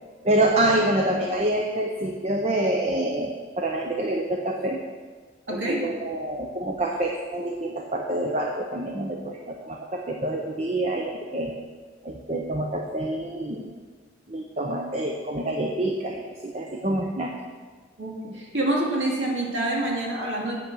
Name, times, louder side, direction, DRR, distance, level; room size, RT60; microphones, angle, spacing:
voice 1, 0.2-4.8 5.5-11.5 12.0-13.7 14.3-17.3, right 1 dB, 35° right, 1 dB, 0.7 m, -27 dB
voice 2, 5.5-5.8 18.0-20.5, right 1 dB, 90° right, -2 dB, 2.3 m, -27 dB
8.3 x 6.8 x 6.2 m, 1.5 s
head